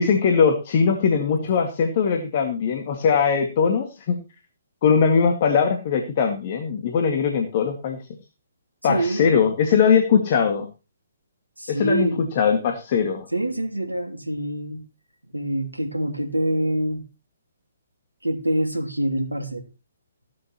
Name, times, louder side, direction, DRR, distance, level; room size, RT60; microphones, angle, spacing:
voice 1, 0.0-4.2 4.8-8.0 8.8-10.7 11.7-13.3, left 6 dB, 40° left, 5 dB, 2.1 m, -20 dB
voice 2, 8.8-9.3 11.6-12.2 13.3-14.8 15.3-17.0 18.2-19.6, right 1 dB, 85° right, 5 dB, 2.7 m, -25 dB
16.0 x 11.5 x 3.0 m, 0.30 s
figure-of-eight pair, 130°, 0 cm